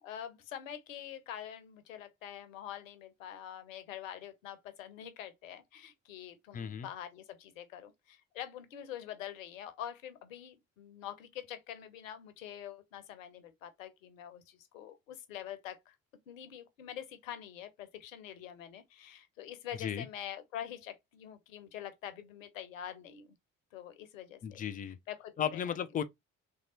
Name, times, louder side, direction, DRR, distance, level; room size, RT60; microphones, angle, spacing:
voice 1, 0.0-16.0 16.3-23.3 23.7-24.6 25.1-25.7, left 10 dB, 75° left, 0.6 m, -45 dB
voice 2, 6.5-6.9 19.7-20.1 24.4-25.0 25.4-26.0, left 8 dB, 25° left, 0.3 m, -35 dB
3.2 x 2.7 x 2.6 m
figure-of-eight pair, 45°, 40 cm